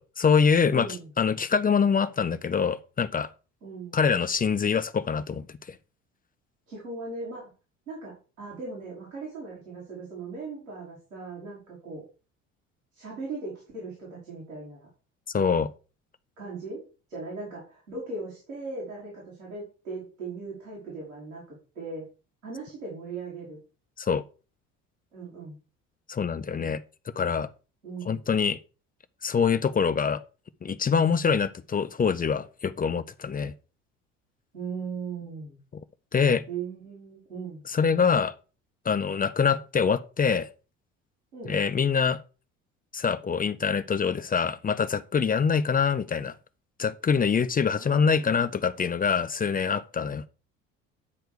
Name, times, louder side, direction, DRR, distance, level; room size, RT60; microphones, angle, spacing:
voice 1, 0.0-0.9 1.2-3.3 3.9-5.8 15.3-15.7 24.0-24.2 26.1-26.8 27.2-27.5 28.1-28.6 29.2-30.2 30.6-33.5 36.1-36.4 37.7-38.3 38.8-40.5 41.5-42.2 42.9-46.3 46.8-50.2, left 6 dB, 25° left, 0.7 m, -24 dB
voice 2, 0.7-1.1 3.6-4.0 6.7-7.4 7.9-12.1 12.9-14.9 16.4-16.8 17.1-22.0 22.4-23.6 25.1-25.6 27.8-28.2 34.5-35.6 36.5-37.6 41.3-41.6 47.6-48.8, right 4 dB, 85° right, 4.5 m, -38 dB
9.7 x 4.5 x 6.7 m
figure-of-eight pair, 60°, 38 cm